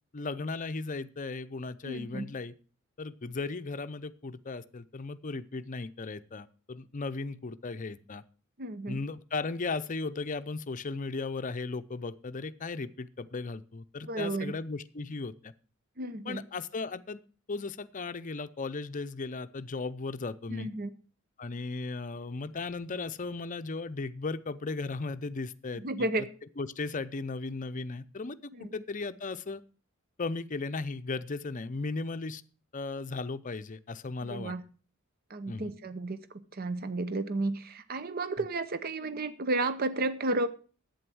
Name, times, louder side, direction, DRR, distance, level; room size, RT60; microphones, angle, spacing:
voice 1, 0.1-2.5 3.0-8.2 8.9-15.5 16.2-17.2 17.5-20.7 21.4-25.8 26.2-26.3 26.6-29.6 30.2-32.4 32.7-34.5 35.5-35.7, left 3 dB, 40° left, 13 dB, 0.6 m, -36 dB
voice 2, 1.8-2.3 8.6-9.0 14.1-14.5 16.0-16.4 20.5-20.9 25.8-26.3 28.5-28.7 34.2-34.6 35.3-40.5, right 2 dB, 45° right, 13 dB, 0.8 m, -32 dB
11.5 x 8.6 x 6.2 m, 0.38 s
head